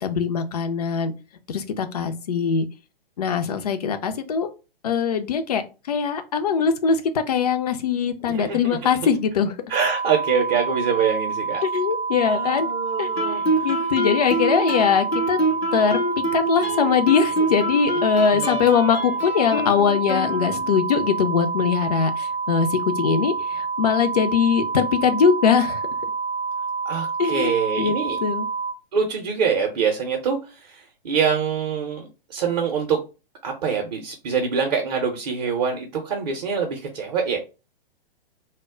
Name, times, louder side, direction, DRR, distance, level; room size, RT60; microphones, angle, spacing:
voice 1, 0.0-1.1 1.5-2.7 3.2-4.5 4.8-5.6 5.9-9.5 11.6-12.7 13.0-13.1 13.6-15.4 15.7-16.0 16.3-25.8 27.2-27.5 27.8-28.4, left 6 dB, 40° left, 8 dB, 0.4 m, -21 dB
voice 2, 8.2-8.9 9.7-11.6 12.2-13.7 18.3-18.7 26.8-28.2 28.9-33.0 33.4-37.4, right 6 dB, 45° right, 2 dB, 0.6 m, -25 dB
sound 1, 9.7-28.7, right 5 dB, 90° right, 0.5 m, -28 dB
Guitar, 13.2-20.9, right 1 dB, 85° left, 0.6 m, -27 dB
2.1 x 2.0 x 3.5 m, 0.31 s
figure-of-eight pair, 115°, 30 cm